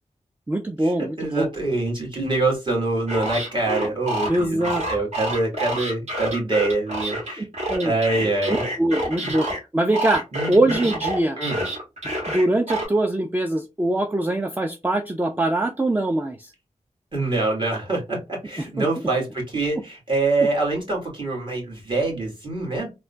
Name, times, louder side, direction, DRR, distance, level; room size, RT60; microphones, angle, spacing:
voice 1, 0.5-1.5 4.3-4.8 7.4-7.9 8.2-9.5 9.7-11.4 12.3-16.5 18.8-18.9, right 1 dB, 15° right, 5 dB, 0.4 m, -23 dB
voice 2, 1.2-7.5 7.8-8.6 9.2-9.3 10.3-10.6 11.4-11.7 17.1-22.9, right 2 dB, 40° right, -2 dB, 1.7 m, -25 dB
sound 1, 3.1-9.6 9.9-12.9, right 1 dB, 60° right, 1.5 m, -28 dB
3.6 x 2.2 x 2.3 m, 0.25 s
cardioid pair, 45°, 13 cm